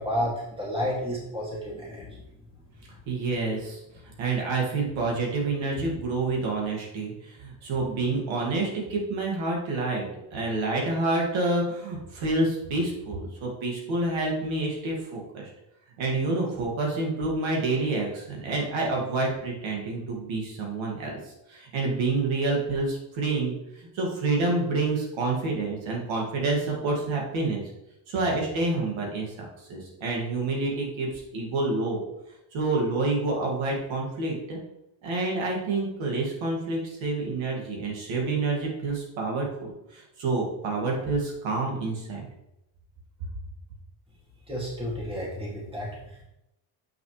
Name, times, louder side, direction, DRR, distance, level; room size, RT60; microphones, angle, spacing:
voice 1, 0.0-2.3 44.5-46.2, equal, 10° right, -4 dB, 2.2 m, -31 dB
voice 2, 3.1-10.1 10.3-15.5 16.0-27.6 28.1-32.0 32.5-34.6 35.0-42.2, right 3 dB, 75° right, -1 dB, 2.3 m, -28 dB
7.8 x 6.1 x 3.2 m, 0.86 s
cardioid pair, 150°, 47 cm